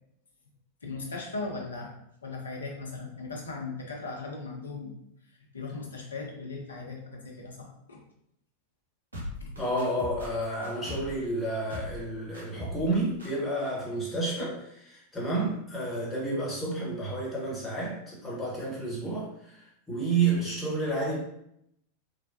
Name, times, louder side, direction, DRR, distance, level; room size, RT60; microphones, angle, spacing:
voice 1, 0.8-1.9 2.2-4.9 5.5-8.0 9.4-9.5, left 3 dB, 70° left, -1 dB, 0.6 m, -38 dB
sound 1, 9.1-11.2 11.7-12.1 12.3-12.9 13.2-13.3, left 1 dB, 75° right, 0.9 m, -39 dB
voice 2, 9.6-21.2, right 2 dB, 10° left, -6 dB, 1.1 m, -30 dB
3.2 x 2.2 x 2.7 m, 0.76 s
figure-of-eight pair, 90°, 0 cm